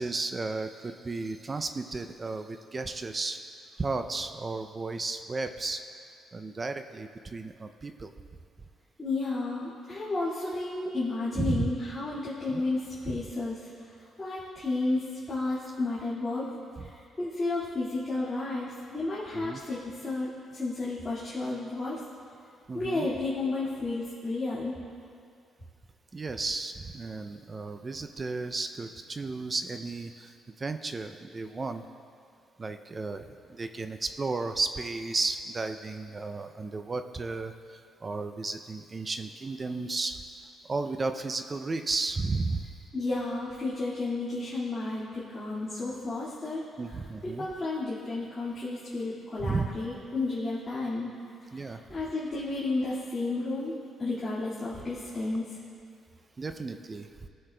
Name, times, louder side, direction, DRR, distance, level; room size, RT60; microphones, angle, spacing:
voice 1, 0.0-3.4 3.8-5.8 6.3-8.1 11.3-11.7 12.5-12.6 13.1-13.2 19.3-19.6 22.7-23.1 26.1-31.8 32.6-37.5 38.0-40.2 40.7-42.7 46.8-47.5 49.4-49.7 51.5-51.8 56.4-57.3, right 3 dB, 30° right, 8 dB, 0.4 m, -33 dB
voice 2, 9.0-13.9 14.2-16.5 16.8-22.0 22.7-24.8 42.9-51.1 51.5-55.6, left 2 dB, 25° left, -10 dB, 2.0 m, -32 dB
19.0 x 6.5 x 2.2 m, 2.3 s
cardioid pair, 90°, 0 cm